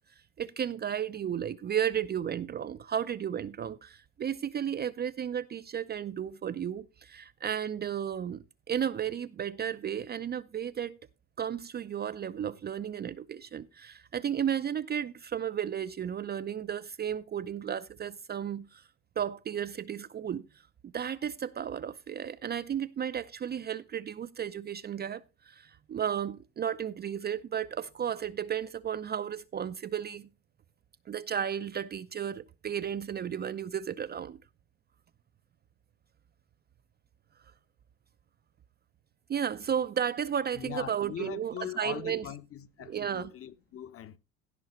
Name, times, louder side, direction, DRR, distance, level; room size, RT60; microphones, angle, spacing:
voice 1, 0.4-11.0 11.4-18.8 19.2-20.4 20.9-30.3 31.1-34.4 39.3-42.2 42.9-43.3, right 8 dB, 25° right, 0.6 m, -33 dB
voice 2, 40.5-44.2, left 10 dB, 35° left, 1.1 m, -41 dB
16.0 x 5.6 x 4.4 m
hypercardioid pair, 80°, 39 cm